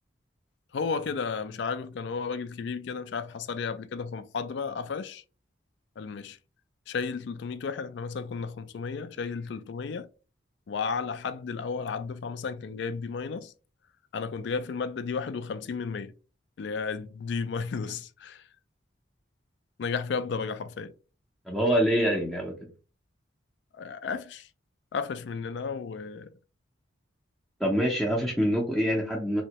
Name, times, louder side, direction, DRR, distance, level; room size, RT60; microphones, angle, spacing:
voice 1, 0.7-5.2 6.0-6.4 6.9-10.1 10.7-13.5 14.1-16.1 16.6-18.4 19.8-20.9 23.7-24.5 24.9-26.3, left 5 dB, 65° left, 0.3 m, -33 dB
voice 2, 21.5-22.5 27.6-29.4, equal, ahead, 0.5 m, -25 dB
3.5 x 2.1 x 2.8 m
head